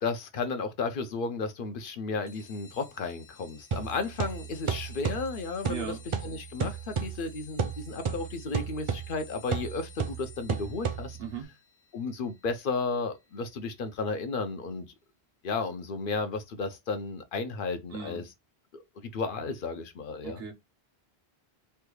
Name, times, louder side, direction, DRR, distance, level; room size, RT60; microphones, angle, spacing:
voice 1, 0.0-6.0 6.2-11.2 11.9-14.9 15.4-18.2 18.7-20.4, left 4 dB, 65° left, 0.7 m, -33 dB
sound 1, 2.3-14.4, left 6 dB, 15° left, 0.5 m, -54 dB
sound 2, 3.7-11.4, right 6 dB, 50° right, 0.4 m, -34 dB
voice 2, 5.7-6.0 11.2-11.5 17.9-18.3 20.2-20.5, right 6 dB, 75° right, 1.1 m, -37 dB
3.3 x 2.3 x 3.0 m
omnidirectional pair, 1.0 m